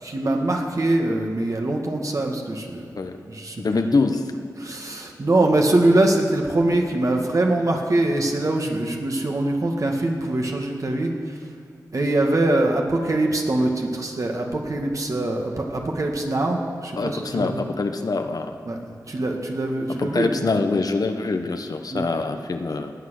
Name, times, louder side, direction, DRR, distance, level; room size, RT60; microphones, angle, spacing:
voice 1, 0.0-2.9 3.3-3.6 4.6-11.4 11.9-17.6 18.7-18.8 19.1-20.3 21.9-22.1, right 2 dB, 55° right, 1 dB, 2.0 m, -23 dB
voice 2, 3.6-4.3 17.0-18.6 20.0-22.9, left 3 dB, 70° left, 7 dB, 1.0 m, -24 dB
19.0 x 8.0 x 6.5 m, 2.2 s
wide cardioid pair, 60°, 7 cm